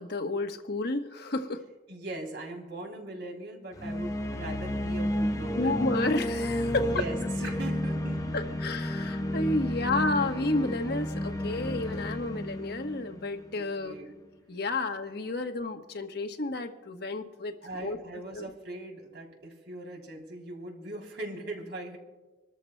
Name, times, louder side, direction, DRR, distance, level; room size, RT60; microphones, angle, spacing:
voice 1, 0.0-1.6 5.6-7.0 8.3-14.0 14.5-18.0 18.4-18.5, left 2 dB, 65° left, 6 dB, 1.1 m, -31 dB
voice 2, 1.9-5.7 6.7-8.4 13.6-14.2 17.6-22.0, right 2 dB, 70° right, 1 dB, 3.2 m, -40 dB
sound 1, 3.7-13.8, left 1 dB, 20° left, 0.8 m, -31 dB
26.0 x 13.5 x 2.2 m, 1.2 s
head